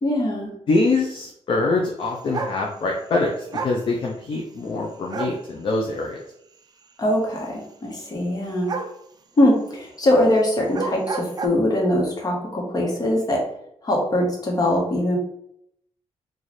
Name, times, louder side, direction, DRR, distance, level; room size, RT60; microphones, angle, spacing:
voice 1, 0.0-0.5 7.0-8.7 9.4-13.4 13.8-15.2, left 1 dB, 35° left, -1 dB, 1.1 m, -22 dB
voice 2, 0.7-6.2, left 3 dB, 50° left, -1 dB, 0.5 m, -24 dB
sound 1, 2.3-2.6 3.5-3.8 5.1-5.4 8.7-9.0 10.6-11.5, right 4 dB, 35° right, 0.3 m, -29 dB
3.1 x 2.4 x 4.0 m, 0.74 s
wide cardioid pair, 150°, 12 cm